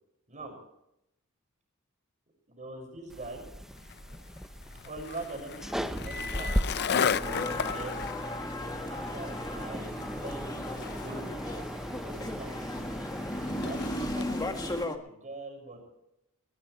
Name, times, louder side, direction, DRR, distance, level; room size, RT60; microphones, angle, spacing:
voice 1, 2.5-3.5 4.8-8.0 9.1-11.3 12.0-12.6 13.6-15.8, right 2 dB, 35° right, 3 dB, 5.8 m, -43 dB
sound 1, 3.1-14.8, equal, ahead, 0.5 m, -37 dB
Skateboard, 3.8-14.3, left 7 dB, 50° left, 0.5 m, -36 dB
sound 2, 7.2-15.0, left 1 dB, 20° left, 1.7 m, -36 dB
20.0 x 19.5 x 3.2 m, 0.83 s
head